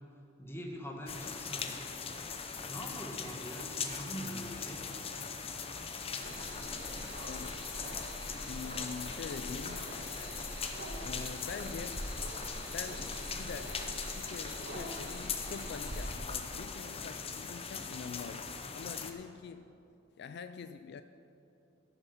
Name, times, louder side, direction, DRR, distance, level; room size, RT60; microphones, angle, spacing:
voice 1, 0.4-1.7 2.7-4.8, equal, 15° left, 1 dB, 1.2 m, -43 dB
sound 1, 1.1-19.1, left 5 dB, 30° left, 0.7 m, -40 dB
sound 2, 4.4-18.1, left 2 dB, 80° left, 1.3 m, -59 dB
sound 3, 6.2-16.2, right 1 dB, 60° right, 1.5 m, -44 dB
voice 2, 7.3-7.6 8.5-10.0 11.0-12.1 12.7-19.7 20.2-21.0, left 5 dB, 60° left, 10 dB, 0.3 m, -45 dB
15.0 x 6.7 x 5.8 m, 2.7 s
head